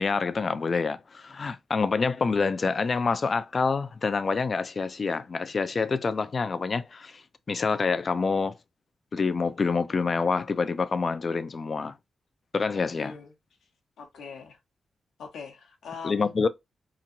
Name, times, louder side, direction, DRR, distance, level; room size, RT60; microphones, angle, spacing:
voice 1, 0.0-8.6 9.1-11.9 12.5-13.2 16.0-16.5, left 4 dB, 50° left, 0.4 m, -27 dB
voice 2, 13.0-13.3 14.0-14.6 15.2-16.3, left 5 dB, 85° left, 0.8 m, -41 dB
2.9 x 2.4 x 2.6 m
supercardioid pair, 45°, 0 cm